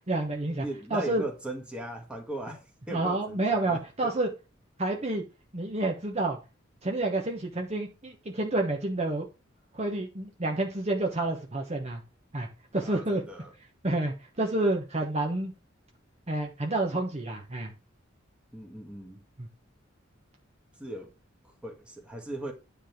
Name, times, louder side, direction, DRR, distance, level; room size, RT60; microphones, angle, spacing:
voice 1, 0.1-0.6 0.9-1.2 2.9-4.3 4.8-5.2 5.5-6.4 6.8-9.3 9.7-12.0 12.3-12.5 12.7-13.2 13.8-15.5 16.3-17.7 19.4-19.5, right 2 dB, 35° right, 1.1 m, -29 dB
voice 2, 0.6-4.1 12.8-13.5 18.5-19.2 20.8-21.1 21.4-22.5, right 1 dB, 5° right, 1.8 m, -39 dB
10.0 x 3.5 x 5.9 m
head